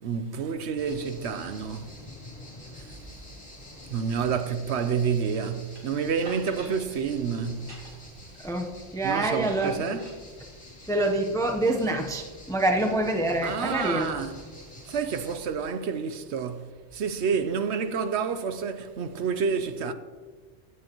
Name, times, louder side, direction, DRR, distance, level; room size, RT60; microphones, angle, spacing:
voice 1, 0.0-1.9 3.9-7.8 9.0-10.1 13.4-14.4 14.9-19.9, right 6 dB, 65° right, 0.9 m, -29 dB
sound 1, 0.8-15.4, left 1 dB, 40° left, 3.2 m, -47 dB
sound 2, 5.7-5.8 6.2-6.8 7.5-8.1 9.2-10.2, right 1 dB, 45° right, 2.1 m, -45 dB
voice 2, 8.4-10.0 10.9-14.1, right 1 dB, 5° left, 0.7 m, -26 dB
16.5 x 9.6 x 3.0 m
omnidirectional pair, 1.3 m